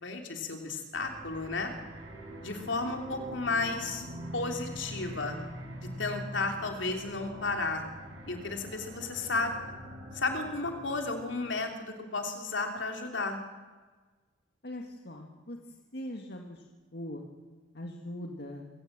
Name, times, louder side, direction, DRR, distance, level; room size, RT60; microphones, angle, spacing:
voice 1, 0.0-1.7 2.4-4.0 4.3-5.4 6.0-7.8 8.3-9.6 10.1-13.4, left 3 dB, 75° left, 4 dB, 3.2 m, -33 dB
sound 1, 0.9-11.6, equal, 90° right, 6.3 m, -44 dB
voice 2, 14.6-15.6 15.9-16.6 16.9-17.2 17.7-18.7, left 1 dB, 55° left, 2 dB, 2.0 m, -41 dB
25.5 x 17.0 x 7.6 m, 1.4 s
head